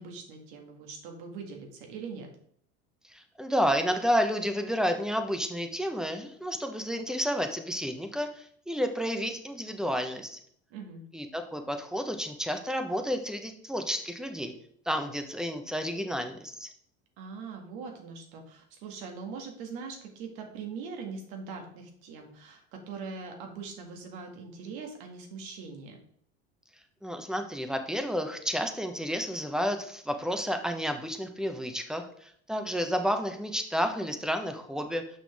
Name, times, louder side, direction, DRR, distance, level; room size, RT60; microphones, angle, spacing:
voice 1, 0.0-2.3 10.7-11.0 17.2-26.0, right 5 dB, 75° right, 2 dB, 1.9 m, -41 dB
voice 2, 3.1-10.4 11.1-14.5 14.9-16.7 27.0-35.0, equal, ahead, 6 dB, 1.0 m, -31 dB
6.4 x 5.7 x 3.5 m, 0.64 s
supercardioid pair, 90°, 31 cm